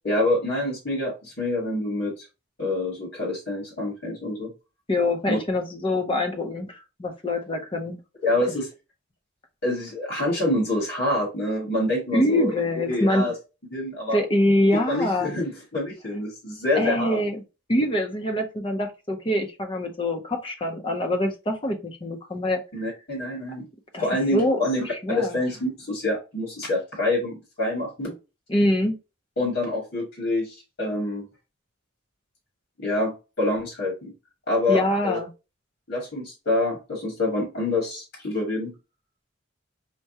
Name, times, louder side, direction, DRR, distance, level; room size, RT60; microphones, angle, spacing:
voice 1, 0.0-2.2 2.6-4.5 5.3-5.4 8.2-8.7 9.6-12.6 12.9-13.3 13.7-14.2 14.7-17.2 22.7-23.7 24.0-28.1 29.4-31.3 32.8-34.1 34.5-35.2 35.9-38.7, left 1 dB, 65° left, -2 dB, 1.6 m, -26 dB
voice 2, 4.9-8.0 12.1-13.3 14.1-15.3 16.7-17.4 17.7-22.6 23.9-24.0 24.3-24.6 25.0-25.4 28.5-29.0 34.7-35.3, left 1 dB, 25° left, 4 dB, 0.6 m, -24 dB
4.5 x 2.2 x 2.7 m, 0.29 s
head